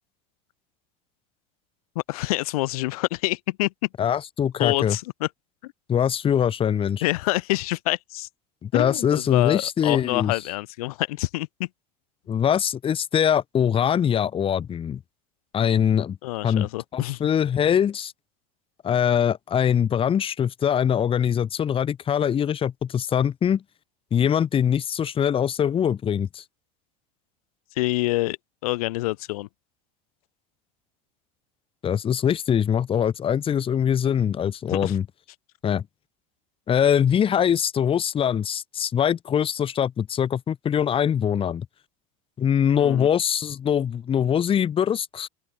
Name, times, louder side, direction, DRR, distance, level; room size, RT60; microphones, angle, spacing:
voice 1, 2.1-3.7 4.6-5.3 5.6-5.7 7.0-8.3 8.7-11.7 16.2-17.2 27.8-28.4 28.6-29.5 34.7-35.0 42.8-43.1, left 20 dB, 85° left, 3.7 m, -26 dB
voice 2, 4.0-5.0 5.9-7.0 8.6-10.4 12.3-15.0 15.5-16.2 16.4-18.1 18.8-23.6 24.1-26.4 31.8-35.0 35.6-35.8 36.7-41.7 42.4-45.3, left 8 dB, 30° left, 1.2 m, -23 dB
open air
supercardioid pair, 110°, 18 cm